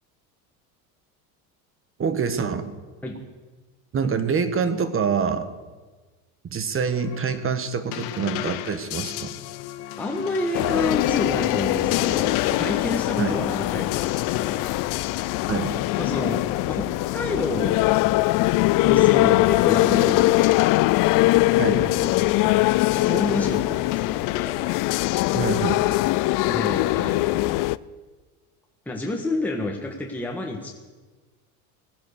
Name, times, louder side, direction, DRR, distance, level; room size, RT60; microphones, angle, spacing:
voice 1, 2.0-2.7 3.9-5.5 6.4-9.3 13.2-13.4 15.5-15.7 21.6-21.9 24.4-24.5 25.3-25.8, right 6 dB, 30° right, 12 dB, 1.4 m, -26 dB
sound 1, 6.9-17.8 18.9-23.6 23.9-26.1, left 14 dB, 75° left, 1.1 m, -35 dB
voice 2, 10.0-14.7 15.2-15.3 15.7-17.8 18.8-20.8 21.6-24.2 26.5-27.7 28.9-30.7, left 2 dB, 5° left, 0 dB, 1.7 m, -30 dB
sound 2, 10.5-27.8, left 19 dB, 50° left, 0.5 m, -22 dB
18.5 x 10.5 x 6.7 m, 1.3 s
supercardioid pair, 105°, 43 cm